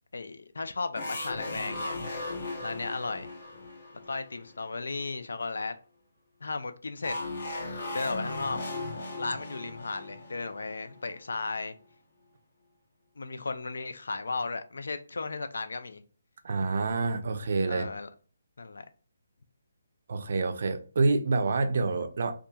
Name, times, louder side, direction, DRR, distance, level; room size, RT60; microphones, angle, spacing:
voice 1, 0.1-2.0 2.6-3.3 4.0-5.8 6.4-7.2 7.9-8.6 9.2-11.7 13.2-16.0 17.7-18.1 18.6-18.9, left 3 dB, 80° left, 0.4 m, -35 dB
sound 1, 1.0-4.8 7.0-11.4, left 2 dB, 45° left, 0.7 m, -37 dB
voice 2, 16.4-17.9 20.1-22.3, right 3 dB, 50° right, 0.4 m, -27 dB
2.7 x 2.4 x 2.2 m
hypercardioid pair, 170°, 0 cm